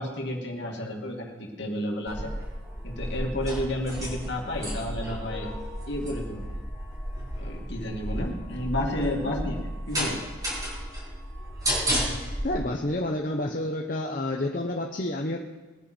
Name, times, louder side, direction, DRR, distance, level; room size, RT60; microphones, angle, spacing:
voice 1, 0.0-2.3 2.8-5.5 5.9-6.4 7.4-10.2, left 1 dB, 60° left, 0 dB, 2.5 m, -31 dB
Steel Cage Opening, 2.1-12.6, equal, 20° right, 4.5 m, -32 dB
voice 2, 12.4-15.4, left 1 dB, 40° left, 1 dB, 1.0 m, -29 dB
21.5 x 9.8 x 4.5 m, 1.2 s
head